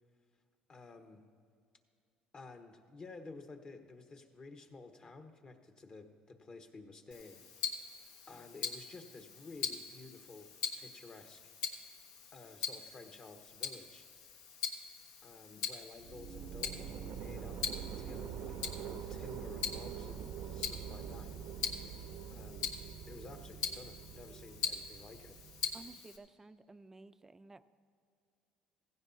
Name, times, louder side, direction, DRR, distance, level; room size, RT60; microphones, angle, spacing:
voice 1, 0.7-1.3 2.3-10.5 10.8-11.5 12.3-14.1 15.2-22.0 22.3-22.7 23.1-25.4, left 3 dB, 35° left, 6 dB, 1.2 m, -53 dB
Tick-tock, 7.1-26.2, left 6 dB, 75° left, 1.3 m, -43 dB
sound 1, 16.0-25.9, right 8 dB, 65° right, 0.6 m, -45 dB
voice 2, 25.7-27.6, right 3 dB, 15° right, 12 dB, 0.5 m, -54 dB
16.0 x 16.0 x 2.7 m, 2.3 s
supercardioid pair, 100°, 3 cm